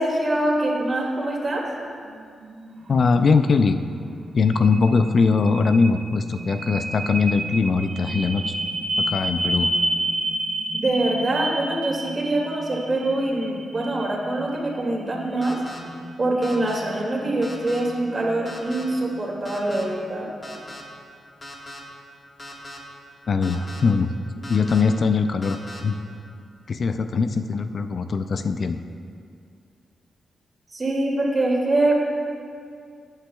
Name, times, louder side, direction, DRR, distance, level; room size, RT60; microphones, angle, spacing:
voice 1, 0.0-1.6 10.7-15.6 16.2-20.3 30.7-32.0, right 1 dB, 40° right, -1 dB, 2.3 m, -24 dB
sound 1, 2.0-20.1, right 1 dB, 65° right, 1.7 m, -31 dB
voice 2, 2.9-3.8 4.3-8.5 9.0-9.7 23.3-24.1 24.5-26.0 26.7-28.8, left 4 dB, 55° left, 8 dB, 0.4 m, -21 dB
sound 2, 15.4-15.8 16.4-16.8 17.4-17.8 18.4-18.8 19.4-19.8 20.4-20.8 21.4-21.8 22.4-22.8 23.4-23.8 24.4-24.8 25.4-25.8, left 1 dB, 30° left, 1.6 m, -39 dB
15.5 x 9.0 x 2.3 m, 2.3 s
cardioid pair, 70°, 0 cm